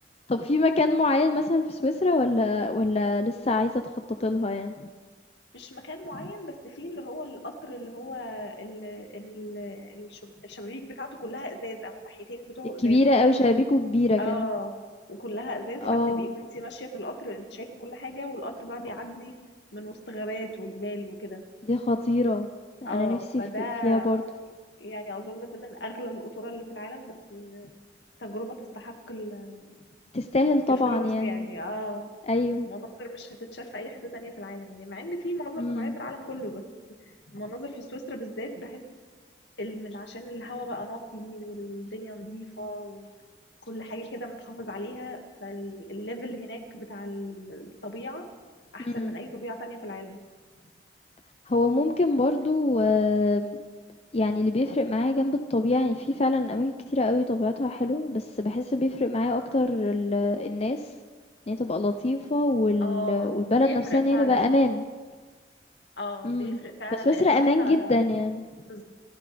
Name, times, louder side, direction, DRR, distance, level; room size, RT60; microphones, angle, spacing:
voice 1, 0.3-3.7 4.2-4.9 12.8-14.5 15.8-16.2 21.7-22.5 22.9-23.4 23.8-24.2 30.1-31.4 32.3-32.7 35.6-35.9 48.8-49.2 51.5-53.6 54.1-60.8 61.5-64.8 66.2-66.6 67.0-68.4, left 2 dB, 35° left, 6 dB, 0.6 m, -24 dB
voice 2, 5.5-13.0 14.2-14.7 15.1-19.3 19.7-21.4 22.8-24.1 24.8-27.7 28.2-29.8 30.7-32.1 32.6-36.6 37.3-38.8 39.6-43.1 43.6-48.2 48.7-50.2 62.8-64.5 66.0-68.0 68.6-68.8, left 1 dB, 75° left, 3 dB, 2.1 m, -37 dB
28.5 x 14.5 x 3.5 m, 1.5 s
head